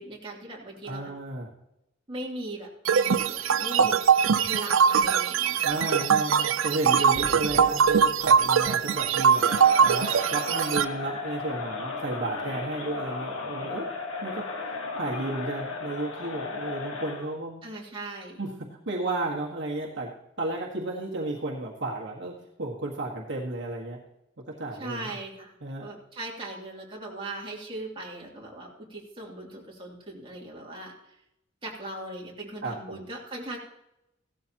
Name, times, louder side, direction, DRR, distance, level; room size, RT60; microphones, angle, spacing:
voice 1, 0.0-1.1 2.1-4.0 4.5-5.8 17.6-18.4 24.8-25.6 25.8-30.9 31.6-33.6, right 2 dB, 25° right, -3 dB, 2.8 m, -39 dB
voice 2, 0.8-1.5 3.7-3.9 5.6-14.6 15.0-17.6 18.4-18.5 18.8-24.0 24.5-25.2 25.6-25.9 32.6-33.0, right 2 dB, 60° right, -2 dB, 1.6 m, -33 dB
sound 1, 2.9-10.8, right 7 dB, 80° right, 0.5 m, -22 dB
sound 2, 7.1-9.5, equal, 25° left, 5.0 m, -44 dB
Crowd, 9.3-17.3, left 3 dB, 85° left, 1.5 m, -35 dB
16.0 x 13.0 x 3.0 m, 0.87 s
head